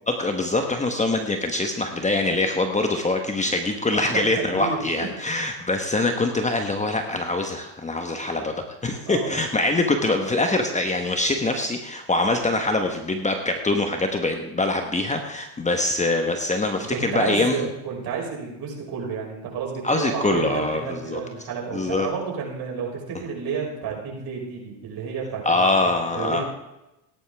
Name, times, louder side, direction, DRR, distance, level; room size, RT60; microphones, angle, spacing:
voice 1, 0.1-8.5 8.8-17.7 19.8-21.2 21.7-22.1 25.4-26.4, left 2 dB, 15° left, 4 dB, 1.3 m, -24 dB
voice 2, 3.9-4.8 9.0-9.4 16.8-26.4, right 6 dB, 45° right, -2 dB, 5.9 m, -31 dB
17.0 x 11.0 x 3.6 m, 0.94 s
supercardioid pair, 100°, 49 cm